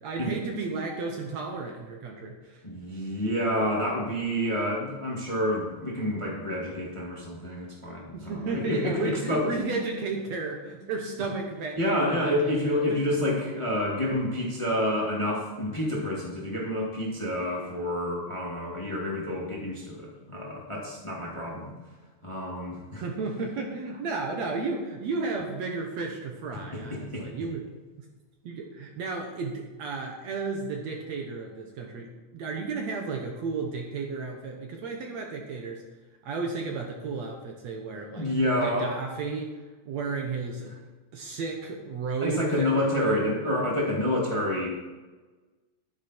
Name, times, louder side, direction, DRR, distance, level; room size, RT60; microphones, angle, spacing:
voice 1, 0.0-2.6 3.1-3.2 8.1-12.5 12.9-13.2 23.0-27.7 28.4-35.8 36.2-38.3 38.5-39.5 39.9-40.7 41.1-43.4, right 4 dB, 65° right, 1 dB, 2.2 m, -33 dB
voice 2, 2.6-9.5 11.8-21.7 22.2-23.0 26.7-27.3 38.1-38.9 42.2-44.7, left 1 dB, 10° left, -3 dB, 1.8 m, -28 dB
11.5 x 10.0 x 4.4 m, 1.3 s
omnidirectional pair, 3.8 m